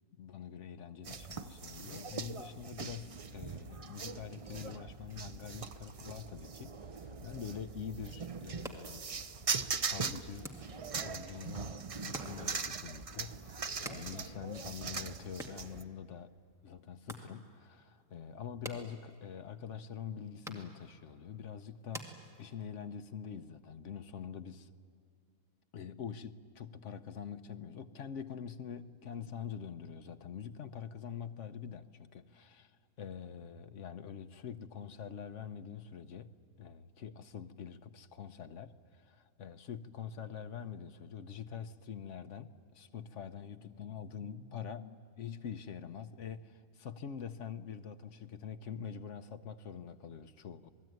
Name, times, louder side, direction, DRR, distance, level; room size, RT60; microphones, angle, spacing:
voice 1, 0.2-9.0 9.8-10.5 11.0-16.3 16.6-24.7 25.7-32.7 33.0-50.7, left 7 dB, 60° left, 1.1 m, -45 dB
sound 1, 1.0-15.8, right 5 dB, 50° right, 0.4 m, -41 dB
sound 2, 8.4-22.9, equal, ahead, 2.1 m, -52 dB
27.5 x 20.0 x 9.4 m
omnidirectional pair, 1.6 m